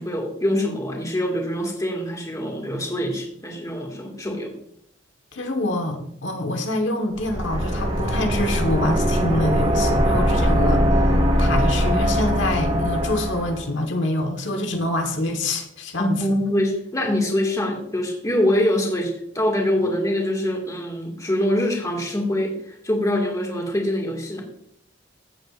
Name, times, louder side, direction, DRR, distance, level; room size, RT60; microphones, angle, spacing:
voice 1, 0.0-4.5 16.0-22.6 22.8-24.4, left 1 dB, 20° left, 0 dB, 1.9 m, -24 dB
voice 2, 5.3-16.4 19.8-19.9, left 1 dB, 75° left, 4 dB, 1.3 m, -26 dB
sound 1, 7.1-13.6, equal, 30° right, 1.9 m, -21 dB
15.5 x 8.1 x 2.5 m, 0.70 s
head